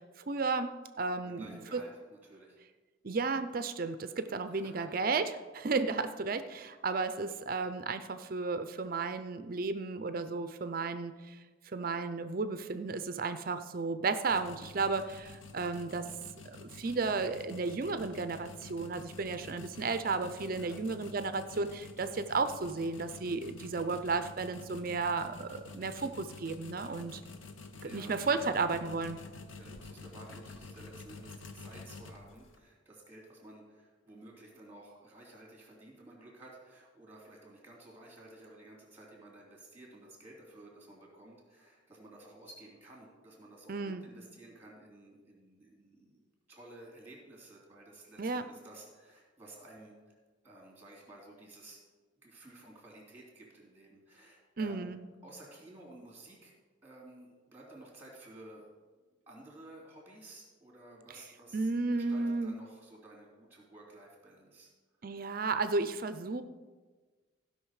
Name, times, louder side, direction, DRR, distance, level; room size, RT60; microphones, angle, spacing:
voice 1, 0.0-1.8 3.0-11.4 11.6-16.1 16.4-27.2 27.8-29.2 43.7-44.0 48.2-48.4 54.6-55.0 61.5-62.5 65.0-66.4, right 4 dB, 45° right, 10 dB, 0.5 m, -33 dB
voice 2, 1.2-2.6 4.5-5.0 16.5-16.6 20.6-20.7 26.8-27.0 27.7-28.5 29.5-46.2 46.5-50.2 50.4-51.8 52.2-54.9 55.2-56.5 56.8-58.7 59.0-64.7 65.0-65.3, right 1 dB, 10° right, -2 dB, 2.8 m, -53 dB
sound 1, 14.2-32.6, left 3 dB, 80° left, 0.9 m, -49 dB
15.0 x 5.7 x 4.8 m, 1.4 s
head